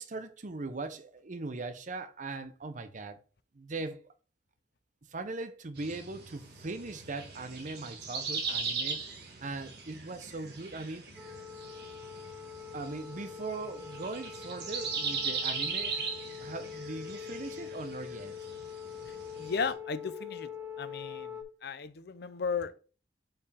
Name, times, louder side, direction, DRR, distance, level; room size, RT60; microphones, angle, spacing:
voice 1, 0.0-3.2 3.5-4.0 5.1-9.0 9.4-11.1 12.7-16.0 16.4-18.3, right 3 dB, 45° right, 0.7 m, -40 dB
sound 1, 5.8-19.7, right 4 dB, 65° right, 1.5 m, -39 dB
sound 2, 11.2-21.4, left 7 dB, 5° right, 0.9 m, -44 dB
voice 2, 19.1-20.5 20.8-22.8, left 5 dB, 65° left, 0.6 m, -35 dB
7.0 x 5.2 x 3.4 m
head